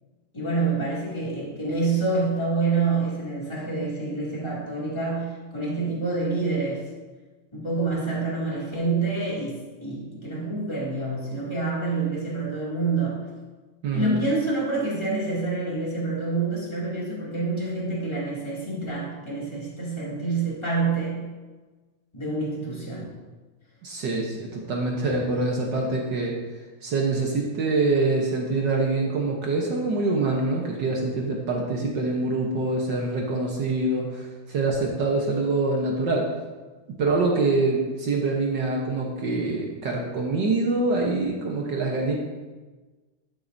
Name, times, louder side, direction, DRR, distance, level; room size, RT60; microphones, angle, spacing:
voice 1, 0.3-6.8 7.5-13.2 13.9-21.2 22.1-23.2, right 3 dB, 10° left, -7 dB, 2.1 m, -27 dB
voice 2, 13.8-14.2 23.8-26.4 26.8-36.3 37.0-42.1, right 3 dB, 65° right, -1 dB, 1.0 m, -25 dB
12.5 x 7.7 x 2.7 m, 1.3 s
omnidirectional pair, 3.4 m